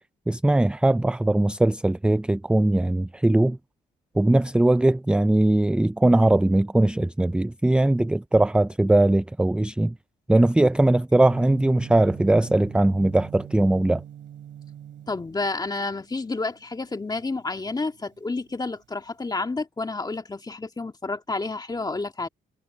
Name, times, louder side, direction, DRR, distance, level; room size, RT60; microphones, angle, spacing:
voice 1, 0.3-3.6 4.2-9.9 10.3-14.0, right 1 dB, 5° right, 0.4 m, -20 dB
Gong, 11.2-19.3, right 10 dB, 70° right, 7.3 m, -44 dB
voice 2, 15.1-22.3, left 3 dB, 20° left, 2.0 m, -30 dB
cardioid pair, 90°, 20 cm